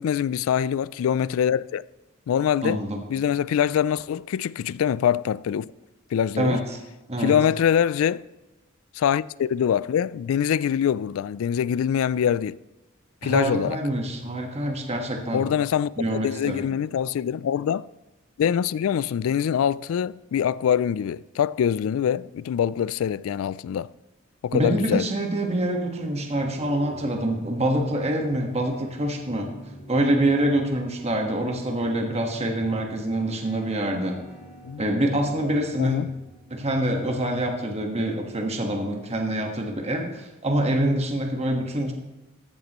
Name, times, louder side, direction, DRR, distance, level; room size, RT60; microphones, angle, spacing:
voice 1, 0.0-1.8 2.3-2.8 3.1-5.7 6.1-6.6 7.2-8.2 8.9-12.6 13.2-13.8 15.3-17.9 18.4-23.9 24.4-25.1 34.6-34.8 35.8-36.1, left 8 dB, 70° left, 0.3 m, -24 dB
voice 2, 2.6-3.0 6.4-6.6 7.1-7.3 13.2-15.5 16.0-16.6 24.5-29.5 29.9-34.2 34.8-36.1 36.5-41.9, right 1 dB, 30° right, 1.4 m, -25 dB
sound 1, 24.8-38.2, equal, 50° left, 3.5 m, -48 dB
14.5 x 11.5 x 3.0 m
head